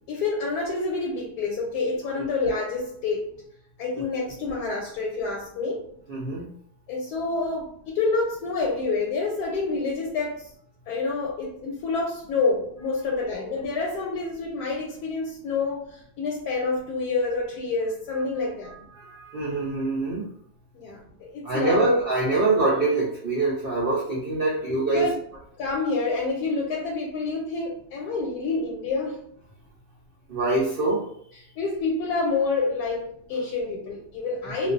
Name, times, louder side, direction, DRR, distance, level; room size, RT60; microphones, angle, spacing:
voice 1, 0.1-3.3 3.8-5.9 6.9-10.5 10.9-18.7 20.7-21.9 24.7-25.2 25.6-29.2 31.4-34.7, left 3 dB, 85° left, -2 dB, 1.1 m, -28 dB
voice 2, 6.1-6.5 18.7-20.3 21.4-25.1 30.3-31.1 34.6-34.7, right 2 dB, 80° right, -5 dB, 0.5 m, -24 dB
2.4 x 2.2 x 2.4 m, 0.65 s
omnidirectional pair, 1.7 m